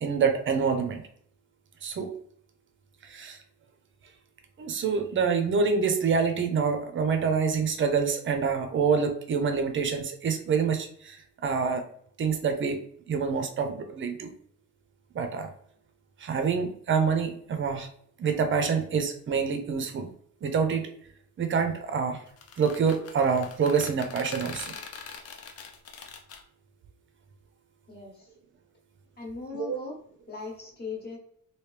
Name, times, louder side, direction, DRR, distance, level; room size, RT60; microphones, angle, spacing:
voice 1, 0.0-1.0 1.8-2.1 3.0-3.4 4.6-11.8 12.2-12.8 13.1-14.3 15.1-15.5 16.2-17.9 18.2-20.1 20.4-20.9 21.4-22.2 22.6-24.7 29.6-29.8, right 5 dB, 40° right, 6 dB, 0.5 m, -26 dB
sound 1, 22.3-26.4, left 6 dB, 50° left, 0.5 m, -42 dB
voice 2, 27.9-28.3 29.2-30.0 30.3-31.2, left 4 dB, 30° left, -1 dB, 1.1 m, -39 dB
3.2 x 2.7 x 3.2 m, 0.63 s
cardioid pair, 145°, 32 cm